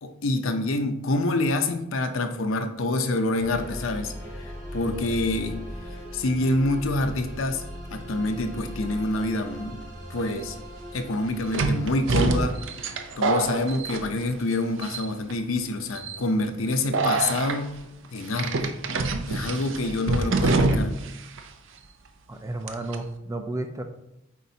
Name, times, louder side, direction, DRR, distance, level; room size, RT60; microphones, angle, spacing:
voice 1, 0.0-5.6 6.1-7.6 7.9-9.8 10.1-10.6 10.9-12.6 13.2-17.7 18.1-18.7 19.3-20.9, left 2 dB, 70° left, 7 dB, 0.6 m, -27 dB
sound 1, 3.4-14.0, equal, 40° right, 1.6 m, -39 dB
sound 2, 10.2-10.3 11.5-14.5 14.8-15.3 15.9-16.2 16.9-17.6 18.4-21.1 21.4-21.5 22.7-23.0, right 3 dB, 65° right, 0.6 m, -25 dB
voice 2, 22.3-23.8, right 2 dB, 15° right, 6 dB, 0.4 m, -32 dB
8.3 x 4.2 x 2.8 m, 0.85 s
head